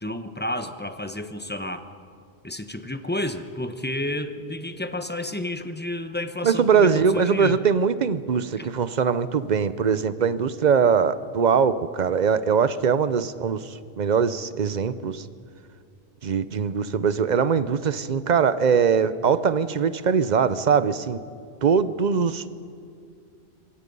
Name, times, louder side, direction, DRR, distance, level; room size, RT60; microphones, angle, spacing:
voice 1, 0.0-1.9 2.4-7.6 8.6-8.7, left 1 dB, 10° left, 9 dB, 0.9 m, -31 dB
voice 2, 6.4-15.2 16.2-21.2 21.6-22.4, right 6 dB, 45° right, 14 dB, 0.8 m, -22 dB
26.0 x 22.5 x 5.4 m, 2.3 s
omnidirectional pair, 1.1 m